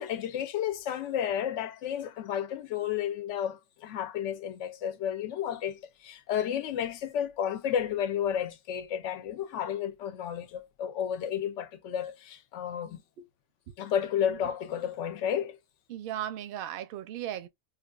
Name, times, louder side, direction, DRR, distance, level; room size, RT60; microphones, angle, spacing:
voice 1, 0.0-13.0 13.8-15.6, left 9 dB, 75° left, 0.9 m, -32 dB
voice 2, 15.9-17.5, right 11 dB, 60° right, 0.6 m, -37 dB
3.1 x 2.3 x 2.3 m
omnidirectional pair, 1.3 m